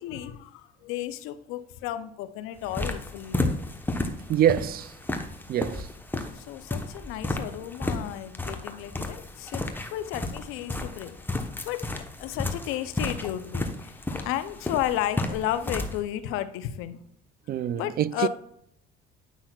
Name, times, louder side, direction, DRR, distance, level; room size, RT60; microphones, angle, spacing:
voice 1, 0.0-3.5 6.3-11.2 11.6-11.9 12.2-17.0 17.7-18.3, left 12 dB, 80° left, 0.7 m, -33 dB
sound 1, 2.6-16.0, left 2 dB, 10° left, 1.0 m, -33 dB
voice 2, 4.3-4.9 5.5-5.9 17.5-18.3, right 11 dB, 45° right, 0.4 m, -25 dB
9.3 x 5.6 x 2.4 m
supercardioid pair, 80°, 21 cm